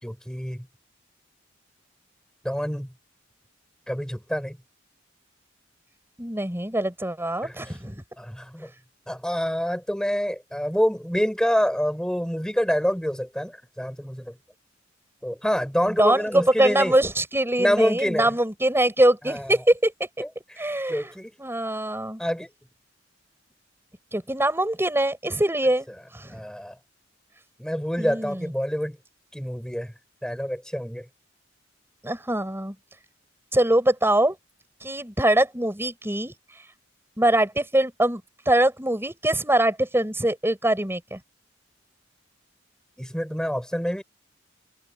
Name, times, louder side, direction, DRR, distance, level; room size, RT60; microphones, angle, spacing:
voice 1, 0.0-0.7 2.4-2.9 3.9-4.6 7.4-7.8 8.2-8.7 9.1-14.4 15.2-16.9 17.6-18.3 19.3-19.6 20.2-21.3 22.2-22.5 26.3-26.8 27.6-29.0 29.3-29.9 30.2-31.1 43.0-44.0, equal, 5° left, 6.7 m, -27 dB
voice 2, 6.2-8.0 16.0-16.3 16.6-19.9 20.6-21.1 21.4-22.2 24.1-25.9 26.1-26.4 28.0-28.5 32.0-32.7 33.5-34.4 34.8-36.3 37.2-38.2 38.5-41.2, right 1 dB, 10° right, 7.7 m, -23 dB
head